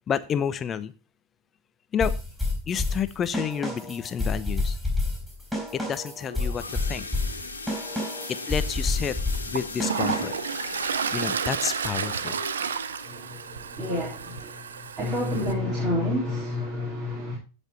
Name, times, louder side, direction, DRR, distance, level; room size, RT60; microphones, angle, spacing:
voice 1, 0.1-0.9 1.9-2.1 2.7-4.8 5.7-7.1 8.3-9.2 9.5-10.4 11.1-12.4, left 8 dB, 25° left, 0.9 m, -29 dB
sound 1, 2.0-10.5, left 2 dB, 5° right, 5.1 m, -29 dB
sound 2, 6.0-14.7 15.1-15.3 15.6-15.7 16.2-16.3, left 3 dB, 80° left, 2.1 m, -39 dB
Toilet flush, 8.7-8.8 9.3-15.5, right 6 dB, 65° right, 0.8 m, -31 dB
voice 2, 13.0-17.4, left 1 dB, 25° right, 3.9 m, -29 dB
16.0 x 5.4 x 4.2 m
figure-of-eight pair, 90°, 0 cm